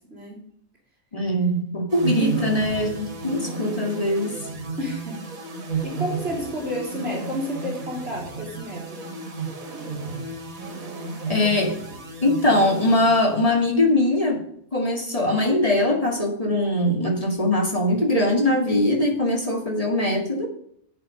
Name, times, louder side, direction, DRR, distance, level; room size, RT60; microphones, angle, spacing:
voice 1, 1.1-4.4 11.3-11.8 12.2-14.4 14.7-20.5, left 1 dB, 25° left, 1 dB, 2.4 m, -21 dB
sound 1, 1.9-13.8, right 4 dB, 75° right, 2.2 m, -33 dB
voice 2, 4.8-5.2 5.8-9.0, left 1 dB, 45° right, -2 dB, 3.8 m, -30 dB
11.0 x 8.3 x 5.3 m, 0.66 s
omnidirectional pair, 1.4 m